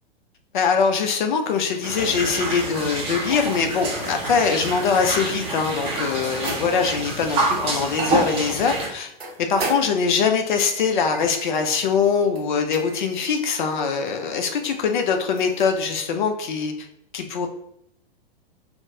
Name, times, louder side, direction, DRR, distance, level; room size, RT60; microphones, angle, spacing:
voice 1, 0.5-9.1 9.5-16.9 17.1-17.5, left 5 dB, 50° left, 5 dB, 0.5 m, -22 dB
sound 1, 1.4-15.9, right 3 dB, 80° right, 0.7 m, -39 dB
sound 2, 1.8-8.9, right 2 dB, 20° right, 0.5 m, -27 dB
2.9 x 2.0 x 2.7 m, 0.78 s
figure-of-eight pair, 100°, 30 cm